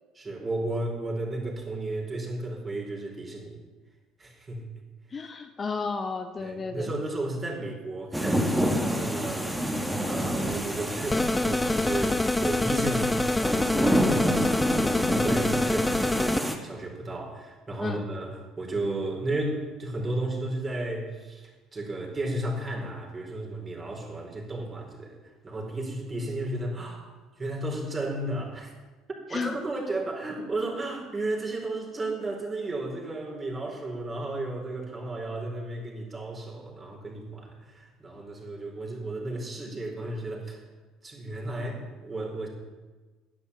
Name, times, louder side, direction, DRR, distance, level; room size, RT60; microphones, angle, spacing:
voice 1, 0.1-3.6 4.2-4.6 5.2-5.3 6.4-9.6 10.1-28.7 29.3-40.6 41.0-42.5, right 2 dB, 25° right, -1 dB, 4.6 m, -34 dB
voice 2, 5.1-6.9 17.8-18.0 29.3-29.6, left 4 dB, 30° left, 7 dB, 0.9 m, -33 dB
sound 1, 8.1-16.6, equal, 5° right, 2.0 m, -28 dB
sound 2, 11.1-16.4, left 2 dB, 15° left, 0.4 m, -26 dB
12.5 x 10.5 x 7.2 m, 1.3 s
figure-of-eight pair, 60°, 0 cm